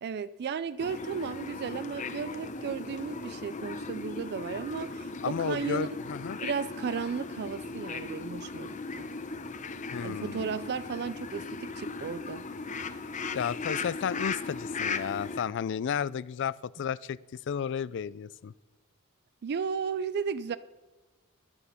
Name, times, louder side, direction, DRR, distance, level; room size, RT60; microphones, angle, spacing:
voice 1, 0.0-5.9 6.4-9.1 10.0-12.4 19.4-20.6, right 6 dB, 50° right, 16 dB, 0.4 m, -34 dB
sound 1, 0.8-15.4, left 4 dB, 35° left, 0.7 m, -37 dB
voice 2, 5.2-6.4 9.9-10.5 13.3-17.2 17.5-18.5, left 7 dB, 55° left, 21 dB, 0.4 m, -33 dB
14.5 x 11.0 x 5.7 m, 1.2 s
head